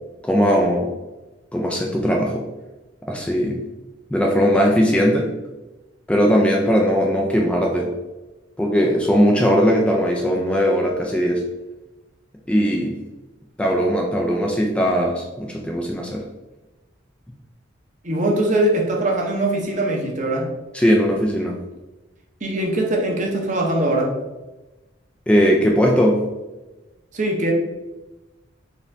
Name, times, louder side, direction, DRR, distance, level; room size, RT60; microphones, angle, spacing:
voice 1, 0.2-0.9 1.5-2.4 3.1-3.6 4.1-5.3 6.1-7.9 8.6-11.4 12.5-12.9 13.6-16.2 20.7-21.6 25.3-26.2, equal, 5° left, -1 dB, 0.3 m, -19 dB
voice 2, 18.0-20.5 22.4-24.1 27.1-27.5, right 1 dB, 40° right, 0 dB, 0.8 m, -21 dB
4.2 x 3.4 x 2.6 m, 1.1 s
head